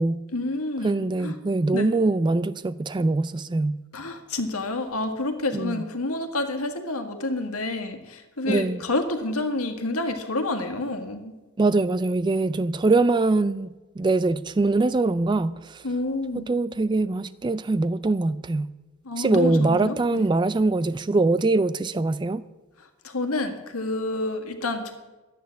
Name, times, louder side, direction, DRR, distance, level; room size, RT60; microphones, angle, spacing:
voice 1, 0.3-1.3 1.7-1.9 3.9-11.3 15.8-16.5 19.0-20.2 23.0-24.9, left 2 dB, 75° left, 1.7 m, -29 dB
voice 2, 0.8-3.8 5.5-5.8 8.4-8.9 11.6-15.8 16.3-18.7 19.2-22.4, right 3 dB, 20° right, 0.3 m, -23 dB
12.5 x 9.3 x 7.5 m
head